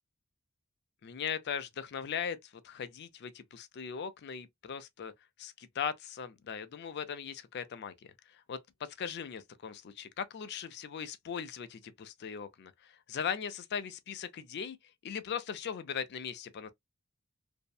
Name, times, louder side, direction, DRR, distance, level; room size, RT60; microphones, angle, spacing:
voice 1, 1.0-5.1 5.4-7.9 8.5-14.8 15.0-16.7, left 7 dB, 50° left, 0.4 m, -39 dB
2.6 x 2.0 x 2.2 m
head